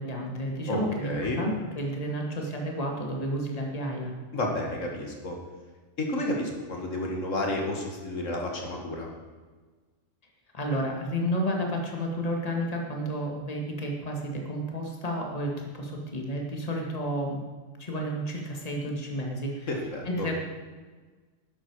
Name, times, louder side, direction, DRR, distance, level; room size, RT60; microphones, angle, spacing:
voice 1, 0.0-4.1 10.5-17.4 17.8-19.7 20.0-20.3, equal, 30° left, 0 dB, 1.9 m, -31 dB
voice 2, 0.7-1.4 4.3-5.3 6.0-9.1 19.7-20.3, left 1 dB, 80° left, 0 dB, 2.3 m, -31 dB
12.0 x 11.0 x 4.8 m, 1.4 s
omnidirectional pair, 1.3 m